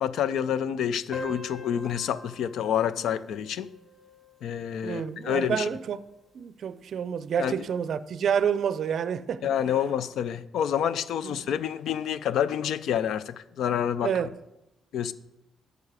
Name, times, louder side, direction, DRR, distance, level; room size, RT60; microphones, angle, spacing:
voice 1, 0.0-3.7 4.4-5.7 7.4-7.6 9.4-14.1 14.9-15.1, left 9 dB, 75° left, 0.4 m, -28 dB
sound 1, 1.1-6.1, left 2 dB, 20° left, 1.3 m, -44 dB
voice 2, 4.8-6.0 6.3-9.8 11.2-11.5 14.0-14.3, right 8 dB, 60° right, 0.4 m, -29 dB
8.1 x 7.3 x 4.8 m
cardioid pair, 90°, 0 cm